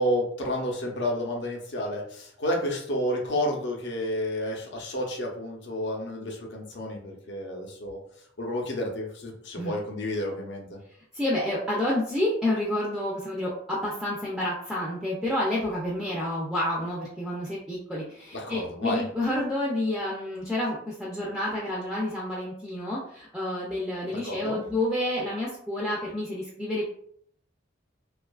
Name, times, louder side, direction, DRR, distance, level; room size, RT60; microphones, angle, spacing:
voice 1, 0.0-8.0 8.4-10.8 18.3-19.0 24.0-24.6, equal, 60° left, 0 dB, 0.6 m, -30 dB
voice 2, 11.1-26.9, left 1 dB, ahead, -6 dB, 0.4 m, -29 dB
2.6 x 2.3 x 2.3 m, 0.65 s
head